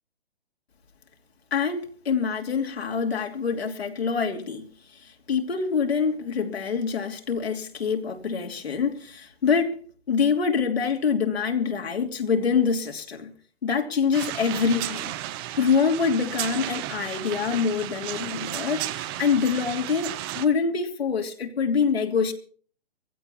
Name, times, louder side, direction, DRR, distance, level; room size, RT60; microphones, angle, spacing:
voice 1, 1.5-4.7 4.9-9.8 10.1-13.3 13.6-15.1 15.4-22.3, left 6 dB, 70° left, 3.0 m, -25 dB
sound 1, 14.1-20.5, right 14 dB, 25° right, 0.8 m, -33 dB
24.0 x 16.0 x 2.8 m
hypercardioid pair, 140°, 32 cm